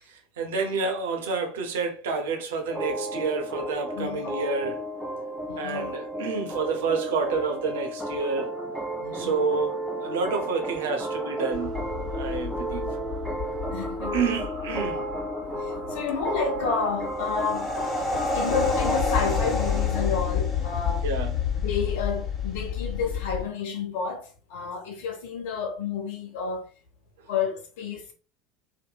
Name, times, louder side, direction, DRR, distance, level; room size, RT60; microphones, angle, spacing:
voice 1, 0.1-4.8 5.6-8.5 9.1-11.7 12.1-12.9 14.1-15.0 21.0-21.3, right 4 dB, 65° right, 0.6 m, -29 dB
sound 1, 2.7-19.0, right 1 dB, ahead, 1.2 m, -33 dB
voice 2, 3.9-4.4 5.5-5.9 9.0-9.4 13.7-14.4 14.9-15.0 15.4-21.0 21.6-26.7 27.3-28.1, left 5 dB, 60° left, 0.8 m, -31 dB
sound 2, 11.5-23.4, left 5 dB, 30° left, 1.2 m, -29 dB
2.8 x 2.5 x 2.2 m
figure-of-eight pair, 70°, 0 cm